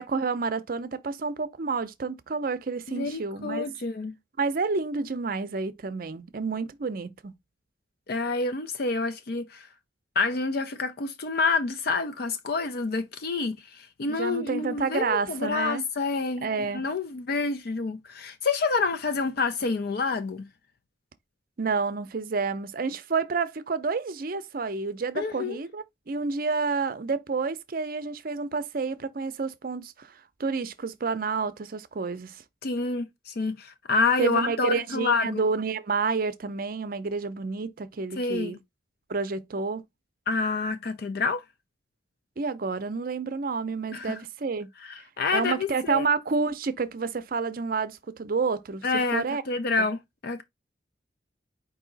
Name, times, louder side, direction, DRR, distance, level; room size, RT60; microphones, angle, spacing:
voice 1, 0.0-3.7 4.4-7.3 14.1-15.8 16.4-16.8 21.6-30.1 30.4-32.4 34.2-38.6 39.1-39.8 42.4-44.7 45.3-49.4, right 4 dB, 50° right, 0.5 m, -29 dB
voice 2, 2.9-4.1 8.1-9.7 10.2-20.5 25.2-25.6 32.6-35.4 38.2-38.6 40.3-41.4 43.9-44.2 44.8-46.1 48.8-50.4, left 4 dB, 55° left, 0.5 m, -28 dB
4.8 x 2.7 x 3.9 m
head